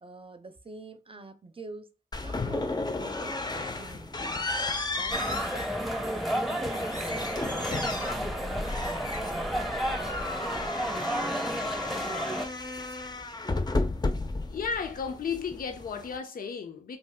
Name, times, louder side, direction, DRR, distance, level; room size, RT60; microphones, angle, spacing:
voice 1, 0.0-1.9 2.2-4.5 4.9-9.5 9.9-11.7, right 3 dB, 40° right, 0.6 m, -46 dB
sound 1, 2.1-16.2, left 2 dB, 30° left, 0.5 m, -34 dB
sound 2, 5.1-12.5, right 1 dB, ahead, 0.7 m, -32 dB
voice 2, 14.5-17.0, left 6 dB, 80° left, 0.5 m, -34 dB
2.6 x 2.3 x 3.5 m
cardioid pair, 40°, 15 cm